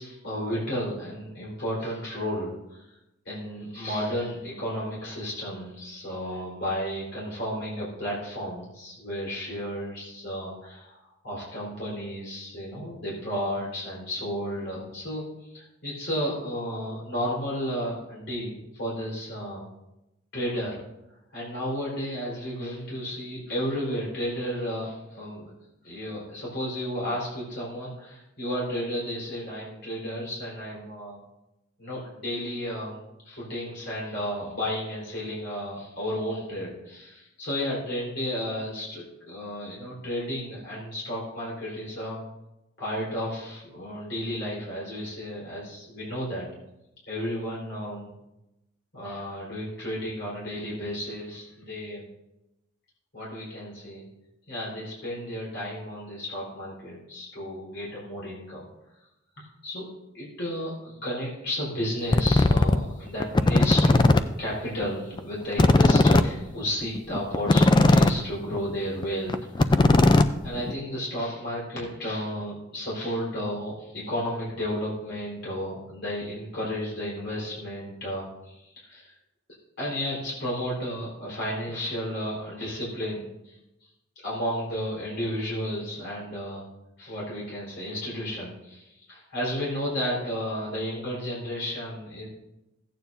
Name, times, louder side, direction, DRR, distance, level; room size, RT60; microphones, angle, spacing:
voice 1, 0.0-2.9 3.2-15.2 15.5-19.6 20.3-20.8 21.3-25.5 25.8-31.2 31.8-33.0 33.2-42.3 42.8-46.5 47.1-48.1 48.9-52.0 53.1-54.0 54.5-58.6 59.4-59.9 60.1-69.8 70.4-79.1 79.8-83.6 84.2-86.7 87.0-92.3, equal, 55° left, -6 dB, 4.3 m, -33 dB
sound 1, 62.1-62.8 63.2-64.2 64.5-64.6 64.8-64.9 65.2-65.3 65.5-68.2 68.5-68.7 69.0-69.1 69.3-70.7, left 2 dB, 20° left, 0.3 m, -18 dB
15.0 x 9.2 x 2.7 m, 0.90 s
head